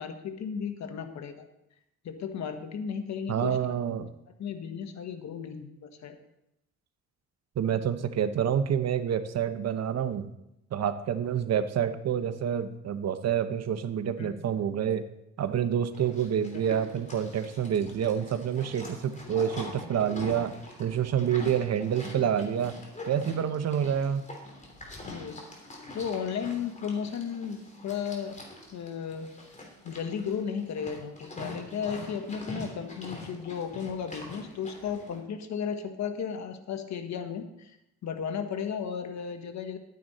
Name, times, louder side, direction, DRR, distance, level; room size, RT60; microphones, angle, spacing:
voice 1, 0.0-1.5 2.0-3.8 4.4-6.2 14.2-14.3 16.5-16.7 25.0-25.4 25.9-28.4 28.7-29.3 29.8-37.7 38.0-39.8, left 7 dB, 65° left, 7 dB, 1.3 m, -34 dB
voice 2, 3.3-4.1 7.6-10.3 10.7-15.0 15.4-20.5 20.8-22.8 23.1-24.2, right 8 dB, 60° right, 10 dB, 0.9 m, -28 dB
Livestock farm animals working animals, 15.9-35.2, left 1 dB, 25° left, 3.4 m, -44 dB
12.0 x 9.4 x 4.2 m, 0.84 s
cardioid pair, 90°, 30 cm